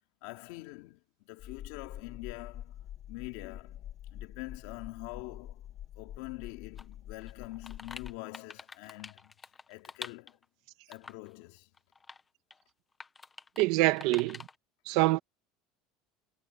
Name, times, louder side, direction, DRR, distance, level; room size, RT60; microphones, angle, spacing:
voice 1, 0.2-2.8 3.1-3.8 4.1-5.7 6.0-9.3 9.7-10.4 10.9-11.7, left 22 dB, 75° left, 2.9 m, -45 dB
sound 1, 1.4-8.2, left 11 dB, 40° left, 1.4 m, -46 dB
sound 2, 6.8-6.9 7.2-10.5 10.9-11.3 11.8-12.2 12.5-12.6 13.0-13.7 13.9-14.6, left 4 dB, 15° left, 1.3 m, -46 dB
voice 2, 13.6-14.4 14.8-15.2, right 20 dB, 70° right, 1.6 m, -25 dB
cardioid pair, 140°, 0 cm